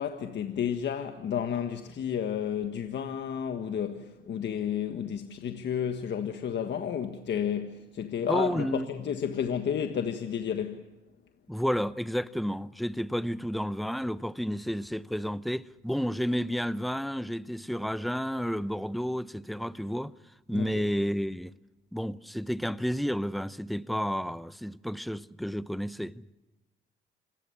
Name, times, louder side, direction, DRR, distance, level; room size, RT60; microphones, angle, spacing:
voice 1, 0.0-10.8 20.5-20.9, left 8 dB, 65° left, 1.5 m, -32 dB
voice 2, 8.3-8.9 11.5-20.1 20.5-21.5 21.9-26.3, equal, ahead, 0.7 m, -31 dB
26.5 x 18.5 x 7.1 m
cardioid pair, 90°, 20 cm